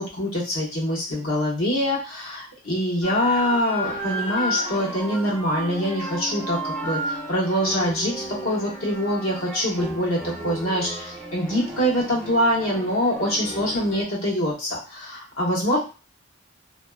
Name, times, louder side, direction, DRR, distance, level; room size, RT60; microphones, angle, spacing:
voice 1, 0.0-15.8, equal, 80° left, -5 dB, 1.2 m, -24 dB
sound 1, 3.0-14.0, equal, 5° left, 0.9 m, -33 dB
2.8 x 2.2 x 2.3 m, 0.32 s
head